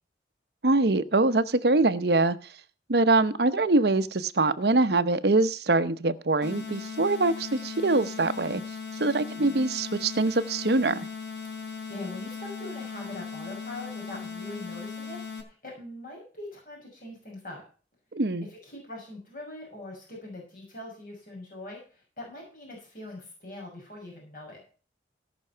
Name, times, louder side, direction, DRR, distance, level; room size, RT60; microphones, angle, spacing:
voice 1, 0.6-2.4 2.9-8.6 8.9-11.0 18.1-18.5, right 2 dB, 65° right, 13 dB, 0.9 m, -23 dB
sound 1, 6.4-15.4, left 5 dB, 70° left, 4.1 m, -38 dB
voice 2, 9.4-9.7 11.6-17.6 18.5-24.6, left 1 dB, 50° left, -1 dB, 6.3 m, -42 dB
17.5 x 6.2 x 5.7 m, 0.38 s
head